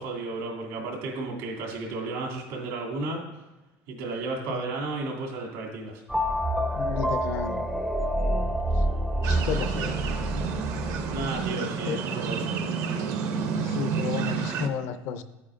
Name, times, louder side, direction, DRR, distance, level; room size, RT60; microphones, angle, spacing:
voice 1, 0.0-3.2 3.9-6.0 11.1-12.6, right 3 dB, 80° right, -1 dB, 2.5 m, -33 dB
sound 1, 6.1-11.5, right 1 dB, ahead, 0.4 m, -28 dB
voice 2, 6.8-7.6 9.3-10.0 11.9-12.0 13.5-15.2, left 7 dB, 60° left, 11 dB, 0.5 m, -32 dB
sound 2, 9.2-14.7, right 6 dB, 55° right, 0.7 m, -30 dB
10.0 x 8.6 x 2.5 m, 1.1 s
cardioid pair, 150°, 6 cm